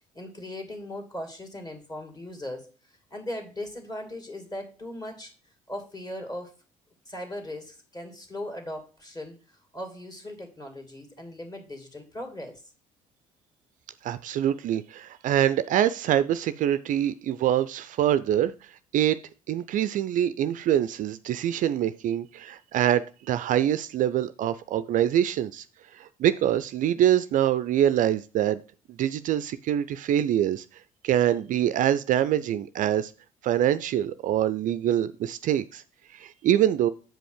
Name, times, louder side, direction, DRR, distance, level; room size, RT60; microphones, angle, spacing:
voice 1, 0.1-5.3 5.7-6.5 7.1-12.6, left 1 dB, 20° left, 4 dB, 2.5 m, -38 dB
voice 2, 14.0-19.2 19.5-25.7 25.9-28.6 28.9-33.1 33.4-35.8 36.1-36.9, right 11 dB, 50° right, 15 dB, 0.4 m, -25 dB
7.5 x 5.1 x 4.9 m, 0.36 s
hypercardioid pair, 55°, 17 cm